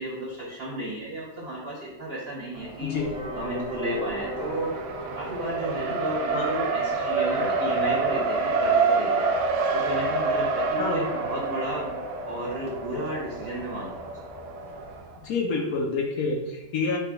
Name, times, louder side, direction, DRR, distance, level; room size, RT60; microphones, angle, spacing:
voice 1, 0.0-3.0 3.3-4.7 5.1-9.3 9.7-11.9 12.3-14.1, right 1 dB, 60° right, -7 dB, 0.6 m, -33 dB
Race car auto racing, 2.6-15.2, right 4 dB, 85° right, 1.4 m, -28 dB
sound 1, 2.9-14.9, equal, 10° right, 0.3 m, -36 dB
voice 2, 15.2-17.0, left 4 dB, 75° left, 0 dB, 0.8 m, -28 dB
4.8 x 2.2 x 4.7 m, 0.99 s
omnidirectional pair, 2.1 m